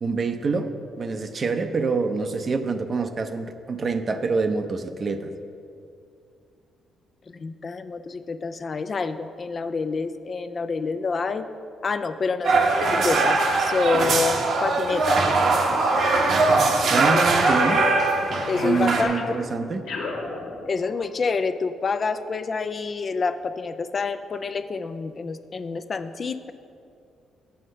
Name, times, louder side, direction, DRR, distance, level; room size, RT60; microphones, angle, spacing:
voice 1, 0.0-0.7 1.0-5.3 16.9-17.8 18.6-19.8, right 4 dB, 40° right, 8 dB, 0.6 m, -26 dB
voice 2, 7.3-11.5 11.8-15.2 17.1-17.4 18.5-19.4 20.7-26.5, left 4 dB, 40° left, 10 dB, 0.4 m, -27 dB
sound 1, 12.4-19.0, right 3 dB, 65° right, 1.0 m, -21 dB
sound 2, 15.9-16.9 17.4-21.0, left 2 dB, 90° left, 1.5 m, -33 dB
7.8 x 5.3 x 6.4 m, 2.5 s
cardioid pair, 90°, 0 cm